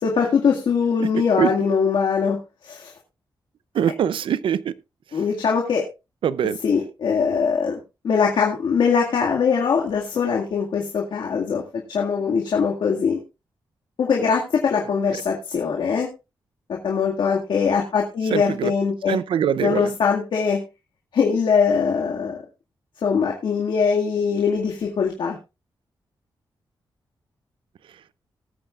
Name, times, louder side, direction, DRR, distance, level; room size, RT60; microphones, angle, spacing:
voice 1, 0.0-2.9 5.1-5.8 6.6-11.6 11.9-13.2 14.0-16.1 16.8-19.2 19.6-20.6 21.1-22.4 23.0-25.4, left 6 dB, 70° left, 2.0 m, -22 dB
voice 2, 3.7-4.7 6.2-6.6 18.3-18.7 19.1-19.9, right 9 dB, 90° right, 0.6 m, -22 dB
20.5 x 8.9 x 2.4 m
wide cardioid pair, 165°, 8 cm